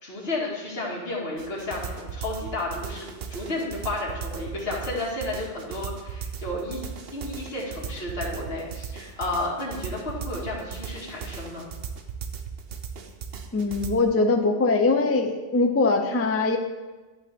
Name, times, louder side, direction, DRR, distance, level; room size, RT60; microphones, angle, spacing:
voice 1, 0.0-6.8 7.1-11.7, left 2 dB, 55° left, -5 dB, 2.3 m, -32 dB
sound 1, 1.4-13.9, right 7 dB, 60° right, 0.9 m, -37 dB
voice 2, 13.5-16.6, left 3 dB, 15° left, 5 dB, 0.5 m, -22 dB
11.0 x 8.2 x 3.6 m, 1.2 s
omnidirectional pair, 1.2 m